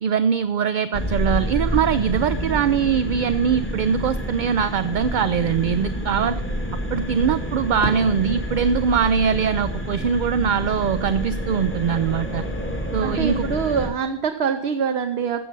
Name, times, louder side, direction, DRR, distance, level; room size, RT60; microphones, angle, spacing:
voice 1, 0.0-6.4 6.9-12.5 12.9-13.5, right 7 dB, 60° right, 13 dB, 0.6 m, -22 dB
sound 1, 0.9-13.9, equal, 10° left, 1.9 m, -28 dB
Fireworks, 7.8-10.7, equal, 75° left, 3.9 m, -36 dB
voice 2, 13.0-15.4, right 6 dB, 90° right, 7 dB, 1.0 m, -24 dB
14.0 x 7.4 x 5.3 m, 0.86 s
omnidirectional pair, 1.1 m